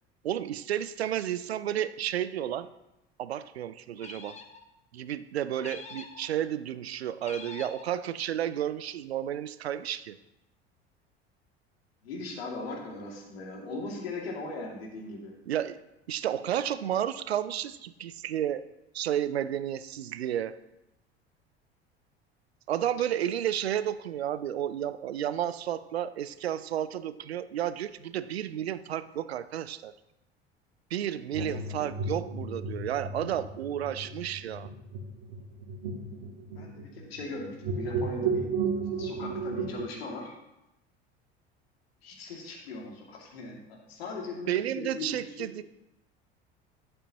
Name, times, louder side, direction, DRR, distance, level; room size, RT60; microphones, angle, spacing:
voice 1, 0.2-2.7 3.2-4.4 4.9-10.2 15.5-15.8 16.1-18.7 18.9-20.6 22.7-29.9 30.9-34.7 44.5-45.6, right 10 dB, 75° right, 15 dB, 0.5 m, -32 dB
sound 1, 4.0-4.6 5.6-6.3 7.2-7.9, left 5 dB, 20° left, 1.0 m, -45 dB
voice 2, 12.0-15.3 31.4-31.5 31.8-31.9 36.5-38.5 39.0-40.3 42.0-45.5, left 3 dB, 70° left, -1 dB, 2.4 m, -39 dB
sound 2, 31.3-39.9, right 4 dB, 55° right, 1.5 m, -34 dB
11.0 x 7.8 x 2.9 m, 0.91 s
figure-of-eight pair, 65°, 32 cm